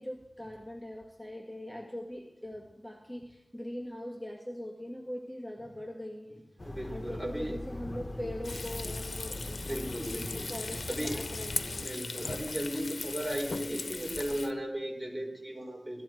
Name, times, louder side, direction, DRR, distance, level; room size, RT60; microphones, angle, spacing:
voice 1, 0.0-6.4 6.8-11.8, equal, ahead, 0 dB, 1.9 m, -41 dB
sound 1, 6.6-11.9, left 1 dB, 40° left, 1.6 m, -41 dB
voice 2, 6.7-7.6 8.1-8.2 9.6-10.5 10.9-11.2 11.8-16.0, equal, 30° right, 0 dB, 4.7 m, -36 dB
Frying (food), 8.4-14.5, left 3 dB, 85° left, 0.7 m, -38 dB
16.5 x 14.5 x 4.6 m, 0.89 s
wide cardioid pair, 50°, 0 cm